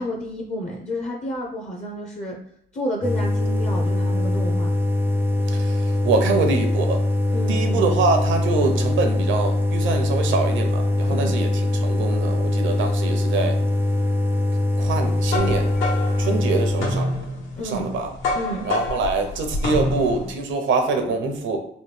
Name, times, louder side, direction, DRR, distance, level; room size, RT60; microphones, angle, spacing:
voice 1, 0.0-2.4 2.7-4.7 7.3-7.6 11.1-11.4 17.6-17.9 18.3-18.7, equal, 35° left, 0 dB, 0.6 m, -30 dB
sound 1, 3.0-17.0, left 2 dB, 10° right, 0.3 m, -22 dB
voice 2, 5.5-7.0 7.5-13.6 14.8-15.7 16.2-17.1 17.6-18.1 18.6-21.6, right 3 dB, 75° right, 5 dB, 0.7 m, -24 dB
sound 2, 14.9-20.3, left 2 dB, 80° left, 1.0 m, -27 dB
3.1 x 2.3 x 3.2 m, 0.72 s
cardioid pair, 90°, 20 cm